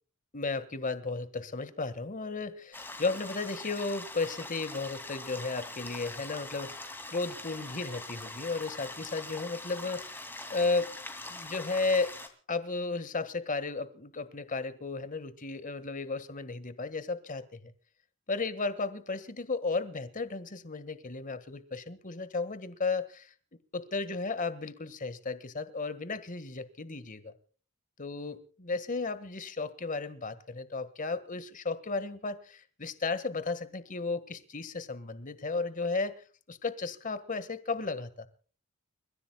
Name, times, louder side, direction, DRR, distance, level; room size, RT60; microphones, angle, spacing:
voice 1, 0.3-10.1 10.5-10.9 11.3-12.1 12.5-17.7 18.3-23.3 23.7-27.3 28.0-36.1 36.5-38.3, left 3 dB, 40° left, 1.6 m, -34 dB
sound 1, 2.7-12.3, left 2 dB, 10° left, 2.5 m, -43 dB
29.5 x 15.5 x 2.3 m
head